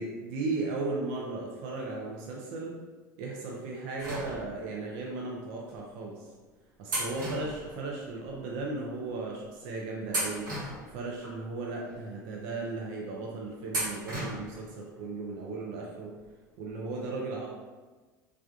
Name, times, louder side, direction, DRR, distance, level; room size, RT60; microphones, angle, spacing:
voice 1, 0.0-2.7 3.2-6.3 6.8-10.5 10.8-16.1 16.6-17.5, right 3 dB, 60° right, -2 dB, 0.5 m, -36 dB
sound 1, 4.0-4.8 5.7-5.8 6.9-8.3 8.6-8.7 9.4-9.6 10.1-11.4 11.9-12.0 13.7-14.7 15.0-15.1 16.2-16.3 16.6-16.7, right 1 dB, 80° right, 0.9 m, -36 dB
3.3 x 2.4 x 2.3 m, 1.3 s
figure-of-eight pair, 70°, 10 cm